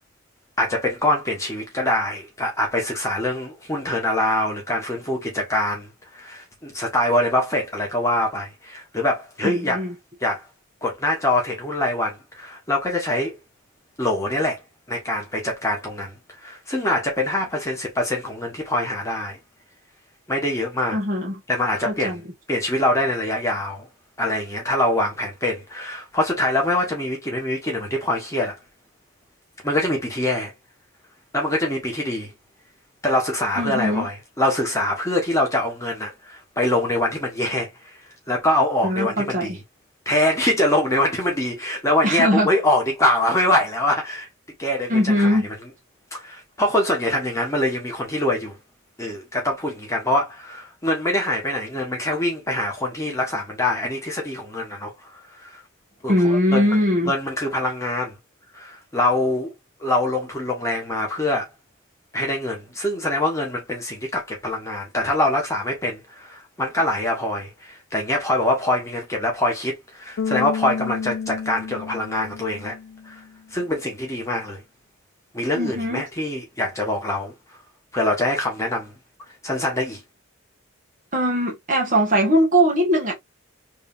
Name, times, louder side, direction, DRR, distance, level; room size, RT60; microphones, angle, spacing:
voice 1, 0.6-9.8 10.2-10.4 10.8-13.3 14.0-14.6 14.9-19.4 20.3-21.0 21.5-22.2 22.5-23.9 24.2-28.5 29.6-30.5 31.3-32.3 33.0-37.9 38.3-39.6 40.0-44.3 44.6-45.4 46.1-48.6 49.0-55.6 56.0-56.8 57.0-58.1 58.5-59.5 59.8-61.5 62.1-72.8 73.0-73.2 73.5-74.6 75.3-77.3 77.9-78.9 79.4-80.0, left 1 dB, 15° left, 1.4 m, -24 dB
voice 2, 9.4-9.9 20.9-21.3 21.8-22.2 33.6-34.1 38.8-39.6 42.0-42.5 44.9-45.5 56.1-57.1 75.5-76.0 81.1-83.1, equal, 40° right, 1.5 m, -20 dB
Bass guitar, 70.2-73.3, left 6 dB, 80° left, 0.4 m, -30 dB
3.4 x 3.2 x 2.7 m
head